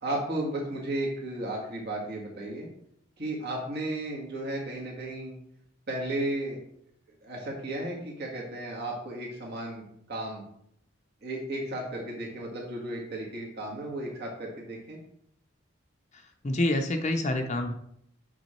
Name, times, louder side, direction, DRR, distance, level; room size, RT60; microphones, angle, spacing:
voice 1, 0.0-2.7 3.2-5.4 5.9-6.6 7.2-10.4 11.2-15.0, right 1 dB, 55° right, -2 dB, 1.8 m, -34 dB
voice 2, 16.4-17.7, left 1 dB, 35° left, 3 dB, 0.6 m, -27 dB
6.4 x 6.0 x 4.3 m, 0.70 s
head